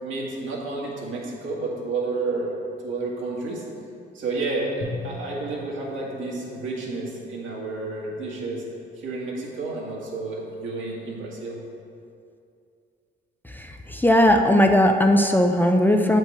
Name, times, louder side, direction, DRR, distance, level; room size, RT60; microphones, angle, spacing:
voice 1, 0.0-2.6 2.8-3.7 4.1-8.6 9.0-11.6, right 3 dB, 75° right, -4 dB, 1.9 m, -30 dB
Drum, 4.8-7.2, left 2 dB, 50° left, 1.3 m, -39 dB
voice 2, 13.5-16.2, left 1 dB, 10° left, 4 dB, 0.4 m, -18 dB
7.9 x 5.3 x 5.0 m, 2.5 s
cardioid pair, 90°, 20 cm